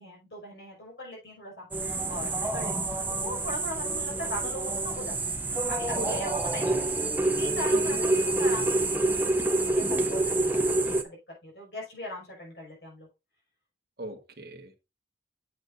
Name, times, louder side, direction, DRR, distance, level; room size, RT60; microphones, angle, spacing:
voice 1, 0.0-5.3 5.7-6.9 7.4-11.2 11.4-13.1, equal, 80° left, 5.5 m, -40 dB
sound 1, 1.7-11.0, right 2 dB, 10° right, 0.6 m, -27 dB
voice 2, 6.0-6.4 7.7-8.0 14.0-14.8, right 1 dB, 65° right, 1.5 m, -40 dB
8.7 x 7.9 x 2.6 m
head